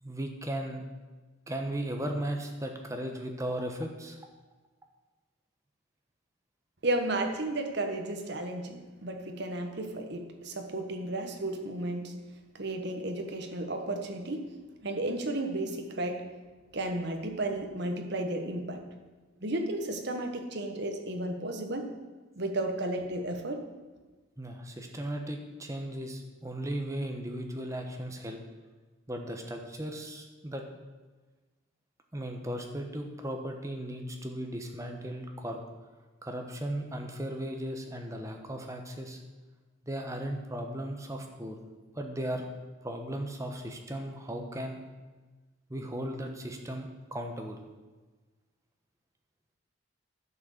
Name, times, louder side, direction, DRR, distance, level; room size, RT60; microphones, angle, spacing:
voice 1, 0.0-0.8 1.5-4.2 24.4-28.4 29.1-30.6 32.1-35.6 36.2-39.2 39.8-41.6 41.9-42.5 42.8-44.8 45.7-47.6, right 1 dB, 15° right, 3 dB, 1.1 m, -36 dB
voice 2, 6.8-12.1 12.5-14.5 14.8-16.2 16.7-18.8 19.4-21.9 22.4-23.6, right 1 dB, 55° right, 4 dB, 1.3 m, -33 dB
11.0 x 6.4 x 6.6 m, 1.3 s
head